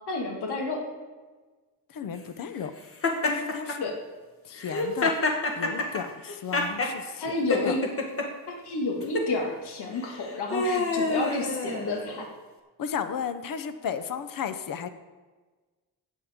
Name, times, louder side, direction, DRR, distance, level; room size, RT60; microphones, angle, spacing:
voice 1, 0.1-0.8 3.8-3.9 7.2-7.8 8.5-12.3, left 2 dB, 80° left, 0 dB, 1.9 m, -30 dB
voice 2, 1.9-2.7 3.2-3.8 4.4-5.1 5.6-7.4 7.6-7.8 12.8-14.9, left 7 dB, 60° left, 11 dB, 0.8 m, -34 dB
Laughter, 3.0-3.8 4.6-7.0 7.5-8.3 9.0-9.3 10.0-12.2, left 2 dB, 35° left, 1.3 m, -27 dB
17.0 x 7.4 x 3.6 m, 1.3 s
wide cardioid pair, 155°, 39 cm